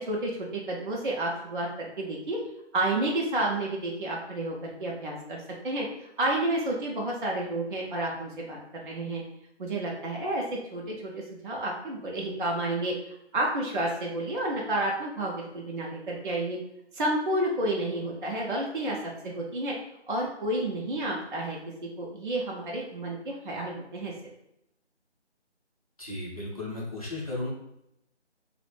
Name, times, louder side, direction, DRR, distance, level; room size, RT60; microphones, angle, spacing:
voice 1, 0.0-2.4 2.7-9.2 9.6-13.0 13.3-16.6 16.9-19.0 19.2-19.7 20.1-21.6 22.0-24.1, right 1 dB, 50° right, -3 dB, 0.4 m, -30 dB
voice 2, 26.0-27.5, left 2 dB, 35° left, -6 dB, 0.6 m, -35 dB
2.4 x 2.0 x 3.1 m, 0.82 s
figure-of-eight pair, 165°, 34 cm